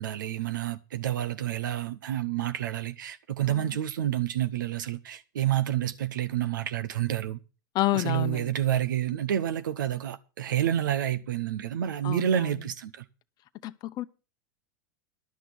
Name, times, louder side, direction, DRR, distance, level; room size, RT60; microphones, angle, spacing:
voice 1, 0.0-7.4 7.9-13.0, right 11 dB, 90° right, 0.7 m, -29 dB
voice 2, 3.5-3.8 7.7-8.6 12.0-12.6 13.6-14.0, left 16 dB, 40° left, 0.8 m, -30 dB
11.5 x 6.0 x 8.3 m
hypercardioid pair, 115°, 10 cm